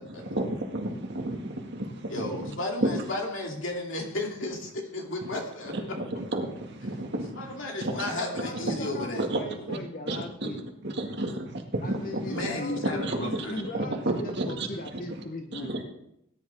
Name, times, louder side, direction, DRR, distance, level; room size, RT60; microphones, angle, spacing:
voice 1, 0.2-2.5 5.7-8.1 8.6-9.4 9.7-9.8 10.1-10.5 10.8-12.5 13.0-13.5 13.7-14.7 15.5-15.8, right 2 dB, 55° right, 2 dB, 1.9 m, -32 dB
voice 2, 2.1-5.7 7.4-9.3 9.5-9.6 12.2-13.6, left 2 dB, 65° left, 0 dB, 2.7 m, -34 dB
voice 3, 7.9-10.7 11.8-15.8, left 2 dB, 40° left, 4 dB, 0.9 m, -39 dB
18.0 x 10.5 x 3.5 m, 0.79 s
head